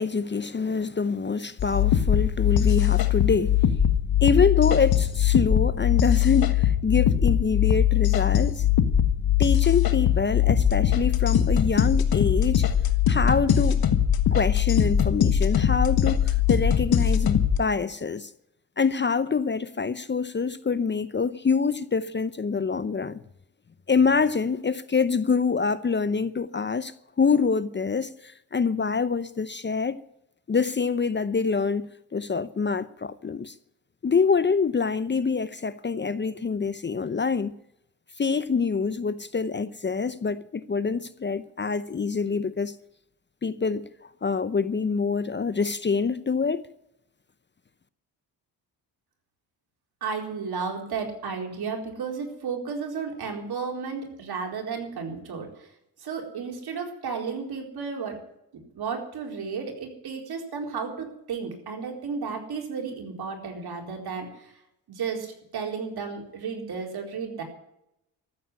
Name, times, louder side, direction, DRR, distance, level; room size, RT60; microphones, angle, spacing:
voice 1, 0.0-3.6 4.2-8.7 9.4-12.7 13.1-13.9 14.3-18.3 18.8-23.2 23.9-30.0 30.5-33.5 34.0-37.6 38.2-42.8 43.4-46.7, left 5 dB, 25° left, 0.7 m, -25 dB
sound 1, 1.6-17.6, left 9 dB, 60° left, 1.5 m, -21 dB
voice 2, 50.0-55.7 56.0-58.2 58.7-64.5 64.9-67.4, right 5 dB, 65° right, 4.3 m, -33 dB
14.0 x 7.9 x 9.8 m
cardioid pair, 70°, 41 cm